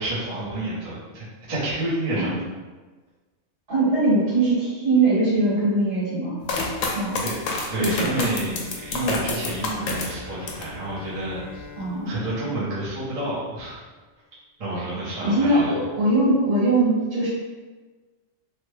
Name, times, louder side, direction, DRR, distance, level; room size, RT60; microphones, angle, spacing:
voice 1, 0.0-2.4 7.2-7.3 7.7-11.6 12.1-13.8 14.6-15.7, right 1 dB, 35° right, -9 dB, 0.8 m, -29 dB
voice 2, 3.7-6.4 6.9-7.2 7.8-8.1 11.8-12.2 15.2-17.3, right 2 dB, 60° right, -11 dB, 1.9 m, -21 dB
sound 1, 6.5-10.8 11.2-11.8, left 3 dB, 75° left, 0.9 m, -28 dB
Bowed string instrument, 8.3-13.8, left 5 dB, 45° left, 0.6 m, -44 dB
3.2 x 2.1 x 3.2 m, 1.3 s
omnidirectional pair, 1.4 m